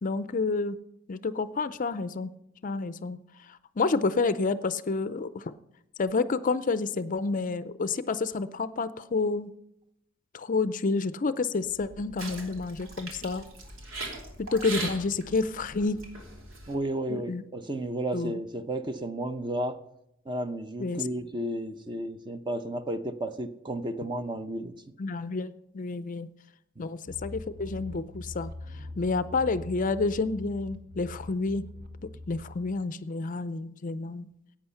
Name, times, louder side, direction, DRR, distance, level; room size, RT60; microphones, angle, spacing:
voice 1, 0.0-0.8 1.1-2.3 2.6-3.2 3.5-5.5 6.0-9.5 10.3-13.5 14.4-16.0 17.1-17.4 18.1-18.3 20.8-21.0 25.0-26.3 26.8-28.5 29.0-31.7 32.3-34.3, left 3 dB, 40° left, 14 dB, 0.5 m, -29 dB
sound 1, 11.7-16.7, right 2 dB, 90° right, 2.9 m, -40 dB
voice 2, 16.7-19.8 20.3-24.9 26.8-26.9, right 1 dB, 25° right, 9 dB, 0.7 m, -33 dB
sound 2, 27.1-32.7, left 2 dB, 50° right, 1.5 m, -43 dB
15.0 x 8.9 x 5.7 m, 0.80 s
head